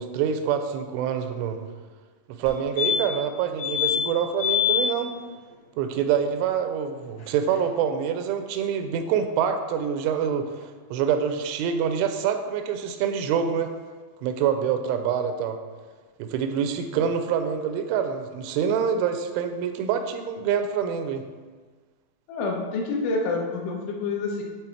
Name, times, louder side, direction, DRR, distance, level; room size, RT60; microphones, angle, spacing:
voice 1, 0.0-1.6 2.3-5.1 5.8-13.7 14.2-15.6 16.2-21.3, right 7 dB, 90° right, 8 dB, 3.0 m, -26 dB
sound 1, 2.5-2.6 2.8-3.3 3.6-4.0 4.4-4.8 7.2-7.3 7.5-7.6, left 10 dB, 70° left, 2.2 m, -24 dB
voice 2, 22.3-24.4, left 3 dB, 85° left, 0 dB, 3.4 m, -28 dB
8.3 x 3.8 x 4.3 m, 1.4 s
omnidirectional pair, 5.3 m